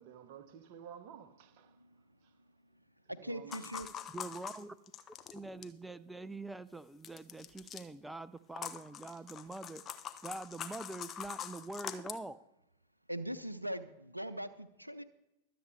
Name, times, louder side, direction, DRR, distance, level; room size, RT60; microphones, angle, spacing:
voice 1, 0.0-1.8 3.2-3.9, right 8 dB, 45° right, 1.1 m, -52 dB
voice 2, 1.7-2.0 3.1-3.9 13.1-15.0, equal, 85° right, 0.6 m, -41 dB
sound 1, 3.5-5.8 7.0-7.8 8.5-12.2, left 9 dB, 25° left, 0.9 m, -44 dB
voice 3, 4.1-4.8 5.3-9.8 10.2-12.4, right 2 dB, 5° right, 0.5 m, -44 dB
23.5 x 8.0 x 3.3 m
figure-of-eight pair, 90°, 0 cm